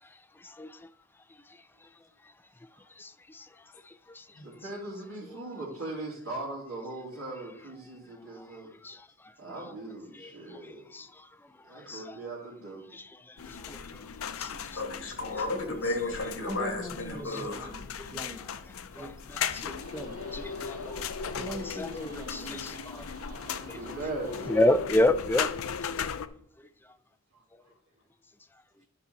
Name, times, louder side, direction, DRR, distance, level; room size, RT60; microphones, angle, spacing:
voice 1, 3.0-3.5 4.2-4.3 8.8-9.0 10.1-10.3 10.9-11.1 11.9-12.0 12.9-13.0 13.7-13.8 14.4-14.5 17.3-17.5 18.0-18.1 19.0-19.1 19.5-19.8 20.3-21.0 21.8-21.9 22.3-23.0 23.7-23.8 24.5-25.5, left 1 dB, 10° left, 0.3 m, -28 dB
voice 2, 4.4-8.7 9.4-10.9 11.7-12.9 23.7-24.6 27.3-27.4, right 2 dB, 75° right, 2.6 m, -39 dB
sound 1, 13.4-26.3, left 7 dB, 85° left, 0.6 m, -37 dB
voice 3, 14.7-17.7, left 2 dB, 65° left, 2.2 m, -33 dB
voice 4, 16.4-18.4 18.9-19.1 19.9-20.2 21.4-22.7 23.0-23.1, equal, 5° right, 0.9 m, -41 dB
Roars loop, 19.8-24.8, right 1 dB, 45° right, 3.9 m, -50 dB
10.0 x 5.6 x 4.0 m
head